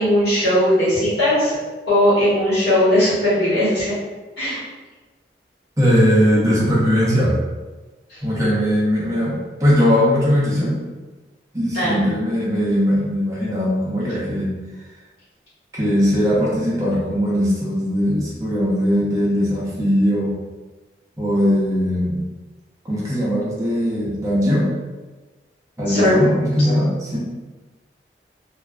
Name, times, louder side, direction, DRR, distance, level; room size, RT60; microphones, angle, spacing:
voice 1, 0.0-1.6 1.9-3.9 4.4-4.6 8.1-8.2 11.7-12.0 25.9-26.2, left 1 dB, 75° left, -10 dB, 1.2 m, -18 dB
voice 2, 5.8-7.4 8.2-10.8 11.5-14.5 15.7-20.3 21.2-22.2 22.8-24.7 25.8-27.2, equal, 15° right, -7 dB, 0.5 m, -19 dB
2.4 x 2.3 x 2.3 m, 1.2 s
head